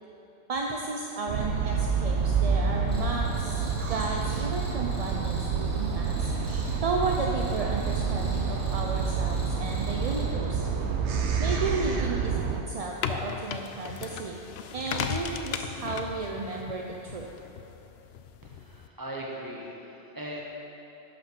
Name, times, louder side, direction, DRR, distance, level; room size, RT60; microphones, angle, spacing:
voice 1, 0.5-3.6 3.9-6.3 6.8-10.7 11.4-14.4 14.7-17.3, right 3 dB, 45° right, 0 dB, 0.5 m, -33 dB
sound 1, 1.3-12.6, right 5 dB, 85° right, 1.0 m, -28 dB
Cricket, 2.9-10.3, equal, 10° left, 2.0 m, -47 dB
sound 2, 12.7-18.9, left 7 dB, 70° left, 0.8 m, -37 dB
voice 2, 18.4-20.4, right 1 dB, 20° right, -4 dB, 1.4 m, -39 dB
11.5 x 5.2 x 6.0 m, 3.0 s
omnidirectional pair, 1.1 m